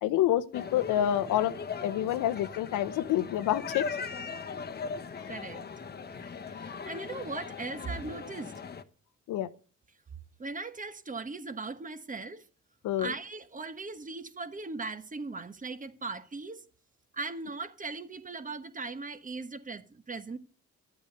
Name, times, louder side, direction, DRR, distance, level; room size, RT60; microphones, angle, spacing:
voice 1, 0.0-1.5 1.8-3.8 9.3-9.5 12.8-13.1, left 12 dB, 85° left, 0.9 m, -27 dB
sound 1, 0.5-8.8, left 5 dB, 35° left, 1.1 m, -39 dB
voice 2, 5.3-5.6 6.5-8.5 10.4-12.5 13.0-16.7 17.1-20.4, right 3 dB, 25° right, 1.3 m, -39 dB
11.5 x 8.7 x 6.6 m
cardioid pair, 90°, 30 cm